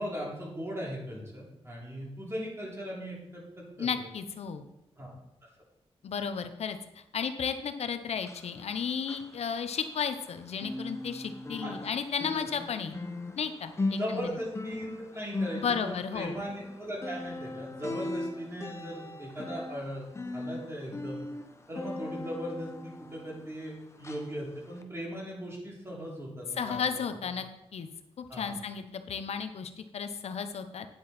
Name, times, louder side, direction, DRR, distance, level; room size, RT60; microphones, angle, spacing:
voice 1, 0.0-3.9 5.0-5.1 11.6-11.8 14.0-20.1 20.3-21.2 21.7-27.0 28.3-28.5, equal, 25° right, -3 dB, 3.1 m, -38 dB
voice 2, 3.8-4.7 6.0-6.8 7.1-13.0 13.4-14.3 15.6-16.4 26.6-27.9 28.2-30.9, left 6 dB, 85° left, 9 dB, 0.8 m, -33 dB
sound 1, 8.1-10.3 10.5-23.7 24.0-24.3 24.8-24.9, left 2 dB, 25° left, 0.9 m, -39 dB
9.9 x 7.8 x 4.2 m, 0.88 s
wide cardioid pair, 120°, 10 cm